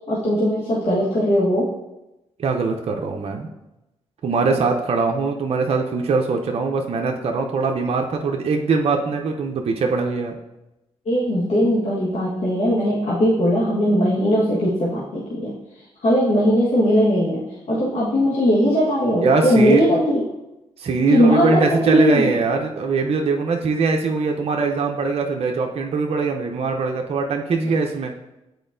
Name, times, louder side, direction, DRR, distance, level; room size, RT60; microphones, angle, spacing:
voice 1, 0.1-1.7 11.0-15.5 16.0-20.2 21.1-22.3, equal, 60° left, -8 dB, 1.5 m, -19 dB
voice 2, 2.4-3.5 4.2-10.4 19.1-19.8 20.8-28.1, right 4 dB, 55° right, 2 dB, 0.7 m, -22 dB
8.2 x 4.3 x 2.6 m, 0.94 s
supercardioid pair, 60°, 12 cm